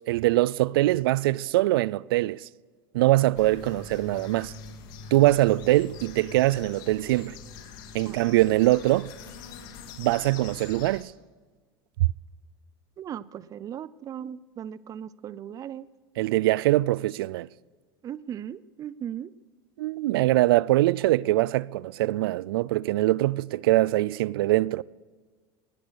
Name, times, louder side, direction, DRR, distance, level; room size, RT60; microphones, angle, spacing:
voice 1, 0.1-2.5 2.9-4.5 5.1-7.4 7.9-9.1 10.0-11.1 12.0-12.1 16.2-17.5 19.8-24.8, right 17 dB, 85° right, 0.4 m, -23 dB
sound 1, 3.3-11.0, left 5 dB, 70° left, 2.2 m, -44 dB
voice 2, 13.0-15.9 18.0-19.3, right 9 dB, 30° right, 0.5 m, -37 dB
20.0 x 10.5 x 6.3 m
supercardioid pair, 120°, 12 cm